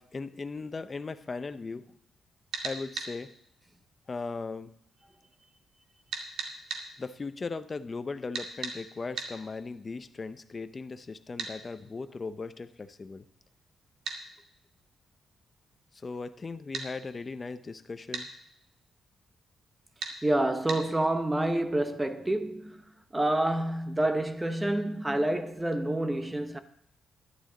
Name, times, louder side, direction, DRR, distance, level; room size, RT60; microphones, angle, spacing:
voice 1, 0.0-2.0 2.6-3.3 4.1-4.7 7.0-13.2 15.9-18.3, left 4 dB, 25° left, 0.5 m, -38 dB
sound 1, 2.5-3.1 6.1-6.8 8.3-8.8 9.2-9.3 11.4-11.5 14.0-14.2 16.7-16.9 18.1-18.3 20.0-20.2 20.7-20.8, right 5 dB, 75° right, 2.2 m, -35 dB
voice 2, 20.2-22.8 23.1-26.6, right 1 dB, 10° right, 0.8 m, -28 dB
12.0 x 11.0 x 3.8 m
cardioid pair, 155°, 0 cm